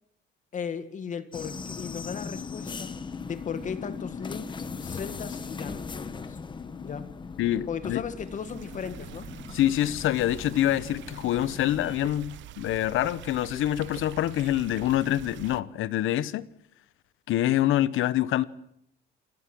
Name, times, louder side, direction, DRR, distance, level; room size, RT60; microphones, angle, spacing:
voice 1, 0.5-3.0 3.2-6.4 6.8-7.2 7.7-9.3, left 7 dB, 40° left, 1.8 m, -36 dB
sound 1, 1.3-12.0, left 5 dB, 25° left, 1.2 m, -39 dB
voice 2, 7.4-8.0 9.5-16.5 17.3-18.4, left 13 dB, 80° left, 1.1 m, -26 dB
sound 2, 8.2-15.6, right 13 dB, 65° right, 1.0 m, -45 dB
28.0 x 21.0 x 7.8 m
cardioid pair, 170°, 20 cm